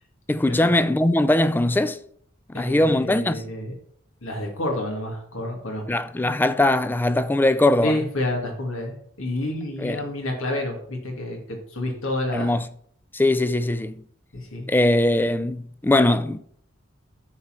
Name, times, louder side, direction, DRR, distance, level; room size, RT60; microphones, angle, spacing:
voice 1, 0.3-2.0 2.5-3.4 5.9-8.0 9.8-10.0 12.3-12.6 13.1-14.0 14.7-16.4, left 1 dB, 10° left, 0.3 m, -21 dB
voice 2, 2.5-3.7 4.2-5.8 7.8-12.6 14.3-14.7, left 1 dB, 85° left, 2.3 m, -29 dB
9.7 x 4.3 x 5.8 m
head